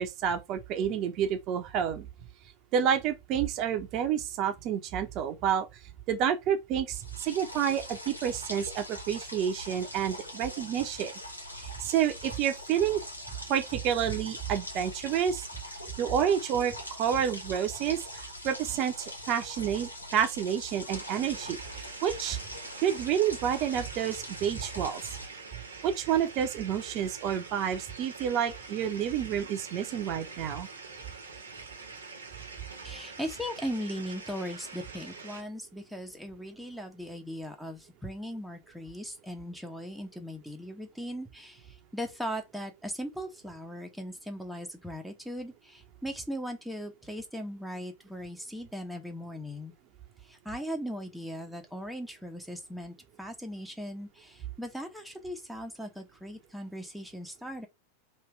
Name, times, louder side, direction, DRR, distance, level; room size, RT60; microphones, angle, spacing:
voice 1, 0.0-2.1 2.7-5.7 6.1-11.1 11.6-13.0 13.5-15.5 16.0-22.4 22.8-25.1 25.8-30.7, right 9 dB, 40° right, 0.9 m, -29 dB
sound 1, 6.9-25.3, left 1 dB, 85° left, 1.1 m, -43 dB
sound 2, 20.9-35.4, right 4 dB, 75° right, 1.2 m, -45 dB
voice 2, 32.8-49.7 50.2-57.7, equal, ahead, 0.9 m, -38 dB
3.3 x 2.9 x 4.7 m
figure-of-eight pair, 90°, 0 cm